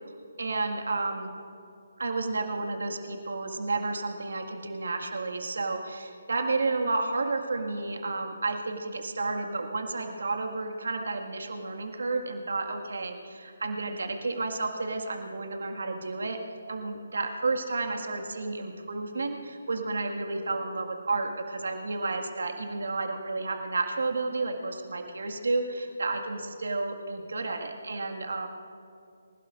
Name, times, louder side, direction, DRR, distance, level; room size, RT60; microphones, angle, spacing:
voice 1, 0.4-1.3 2.0-16.4 16.7-28.5, right 3 dB, 65° right, 3 dB, 1.8 m, -31 dB
27.0 x 16.5 x 2.5 m, 2.5 s
figure-of-eight pair, 145°, 0 cm